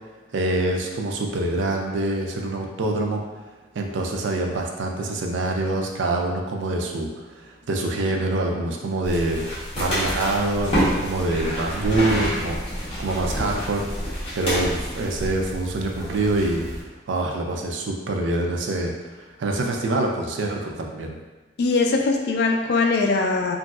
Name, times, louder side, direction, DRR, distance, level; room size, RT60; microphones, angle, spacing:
voice 1, 0.3-3.2 3.7-9.4 9.8-13.9 14.4-21.1, right 2 dB, 75° right, 1 dB, 0.4 m, -25 dB
sound 1, 9.0-16.8, equal, 30° left, 0.9 m, -28 dB
voice 2, 21.6-23.6, left 3 dB, 55° left, 3 dB, 0.3 m, -21 dB
2.9 x 2.6 x 2.3 m, 1.3 s
head